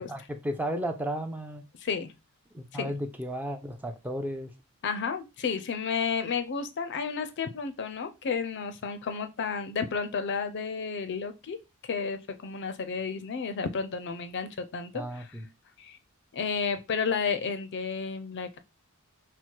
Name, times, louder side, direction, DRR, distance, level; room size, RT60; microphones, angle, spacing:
voice 1, 0.0-1.6 2.5-4.5 14.9-15.5, equal, 5° right, 0.4 m, -34 dB
voice 2, 1.8-2.1 2.7-3.0 4.8-11.6 11.8-15.4 15.8-16.0 16.3-18.6, left 5 dB, 55° left, 0.5 m, -32 dB
4.4 x 2.1 x 4.4 m
head